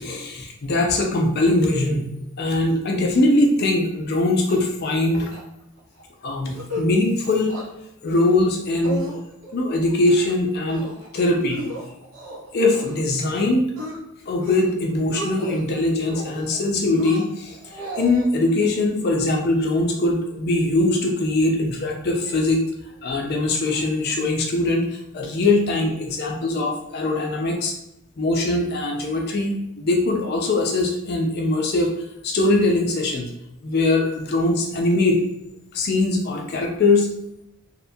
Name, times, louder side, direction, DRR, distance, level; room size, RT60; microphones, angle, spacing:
voice 1, 0.0-5.3 6.2-7.6 8.0-9.1 9.5-10.9 11.1-11.6 12.5-13.6 14.3-22.7 23.0-27.7 28.2-31.9 32.2-33.2 33.6-35.2 35.7-37.1, left 2 dB, 50° left, 1 dB, 0.4 m, -21 dB
sound 1, 4.5-5.0 5.3-5.4 5.8-6.0 6.4-6.9 7.2-7.7 8.1-8.5 8.8-9.5 9.9-10.4 10.7-11.1 11.5-13.0 13.3-14.0 14.3-14.7 15.0-15.6 16.0-16.6 16.9-18.3, equal, 75° right, 0.7 m, -34 dB
2.8 x 2.2 x 2.6 m, 0.84 s
head